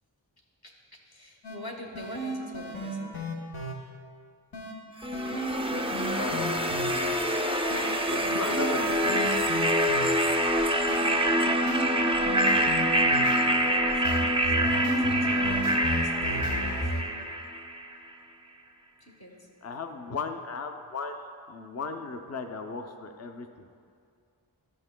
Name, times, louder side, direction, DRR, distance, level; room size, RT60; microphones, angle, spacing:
voice 1, 1.0-3.3 5.6-5.7 11.1-11.3 11.6-13.9 14.3-16.9 19.0-19.5, equal, 50° left, -1 dB, 1.3 m, -45 dB
sound 1, 1.4-1.6 2.0-3.7 4.5-4.7 5.1-6.9 7.7-7.9 8.3-10.2 10.9-11.1 11.5-13.4 14.0-17.0, right 1 dB, 85° left, 1.0 m, -34 dB
sound 2, 5.0-17.9, equal, 15° right, 0.4 m, -26 dB
voice 2, 6.1-7.2 8.1-9.5 19.6-23.7, left 4 dB, 35° left, 6 dB, 0.5 m, -36 dB
13.0 x 5.9 x 2.2 m, 2.3 s
wide cardioid pair, 45°, 46 cm